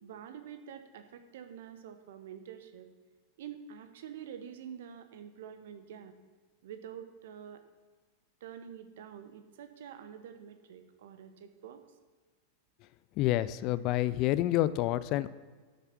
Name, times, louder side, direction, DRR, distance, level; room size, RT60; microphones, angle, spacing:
voice 1, 0.0-2.9 3.4-6.1 6.6-7.6 8.4-11.8, right 8 dB, 55° right, 8 dB, 1.1 m, -47 dB
voice 2, 13.2-15.3, left 15 dB, 40° left, 17 dB, 0.4 m, -28 dB
11.5 x 6.6 x 6.0 m, 1.4 s
figure-of-eight pair, 90°, 0 cm